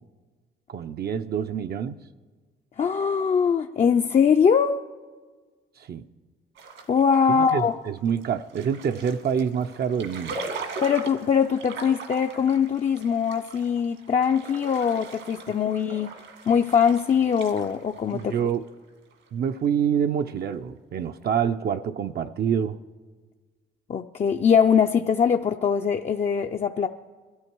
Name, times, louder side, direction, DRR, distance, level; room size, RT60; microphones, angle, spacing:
voice 1, 0.7-2.0 5.8-6.0 7.3-10.4 18.1-18.6 19.3-22.8, right 8 dB, 55° right, 0.5 m, -26 dB
voice 2, 2.8-4.8 6.9-7.7 10.8-16.1 16.5-18.3 23.9-26.9, left 7 dB, 35° left, 0.4 m, -22 dB
sound 1, 6.6-19.1, right 3 dB, 75° right, 1.8 m, -40 dB
21.5 x 13.0 x 4.6 m
cardioid pair, 90°, 20 cm